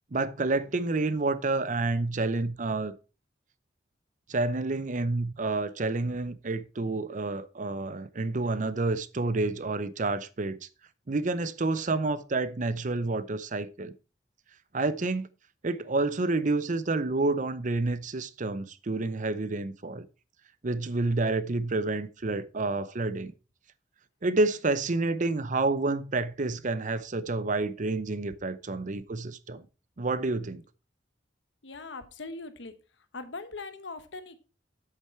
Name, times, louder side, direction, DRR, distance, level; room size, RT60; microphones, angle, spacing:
voice 1, 0.1-2.9 4.3-10.6 11.1-13.9 14.7-15.3 15.6-20.0 20.6-23.3 24.2-29.6 30.0-30.6, right 3 dB, 45° right, 0.7 m, -29 dB
voice 2, 31.6-32.7 33.1-34.4, left 3 dB, 90° left, 1.1 m, -40 dB
8.0 x 6.7 x 4.4 m
head